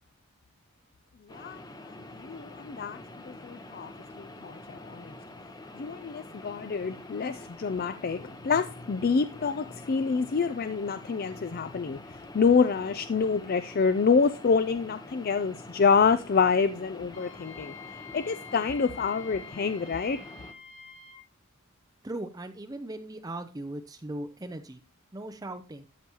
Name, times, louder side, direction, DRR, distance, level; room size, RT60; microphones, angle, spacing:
voice 1, 1.3-3.0 3.3-5.1 5.7-20.2, left 5 dB, 40° left, 0.4 m, -27 dB
sound 1, 1.3-20.5, left 2 dB, 15° left, 0.8 m, -46 dB
Wind instrument woodwind instrument, 17.1-21.2, left 6 dB, 65° left, 3.1 m, -47 dB
voice 2, 22.0-24.8 25.1-25.8, right 1 dB, 15° right, 0.5 m, -38 dB
12.5 x 6.9 x 2.9 m
head